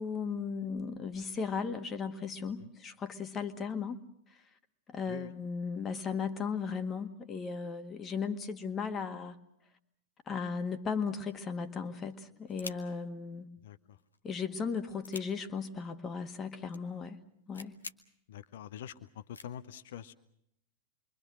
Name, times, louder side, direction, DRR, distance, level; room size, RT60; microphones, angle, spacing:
voice 1, 0.0-4.0 4.3-4.4 4.9-9.4 10.3-13.5 14.2-17.2 17.5-17.8, left 5 dB, 25° left, 1.7 m, -36 dB
sound 1, 11.1-11.5 11.8-11.9 12.1-13.1 13.9-14.2 14.6-15.3 16.2-16.3 16.5-16.8 17.1-17.2 17.5-17.9 18.6-18.7 19.3-19.5, left 4 dB, 75° left, 1.1 m, -47 dB
voice 2, 13.6-14.0 18.3-20.1, left 10 dB, 55° left, 0.9 m, -45 dB
28.0 x 23.5 x 6.3 m
figure-of-eight pair, 90°, 0 cm